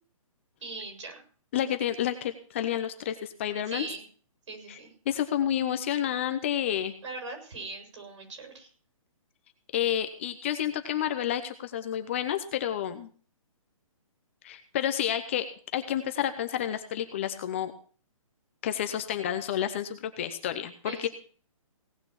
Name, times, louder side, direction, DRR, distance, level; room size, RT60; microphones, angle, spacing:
voice 1, 0.6-1.2 3.7-4.0 4.5-4.9 7.0-8.7 20.8-21.1, right 3 dB, 60° right, 3 dB, 7.3 m, -40 dB
voice 2, 1.5-3.9 4.7-4.8 5.1-6.9 9.7-13.1 14.4-15.5 15.7-17.7 18.6-21.1, left 10 dB, 20° left, 9 dB, 0.7 m, -30 dB
18.0 x 6.7 x 7.1 m, 0.42 s
hypercardioid pair, 170°, 18 cm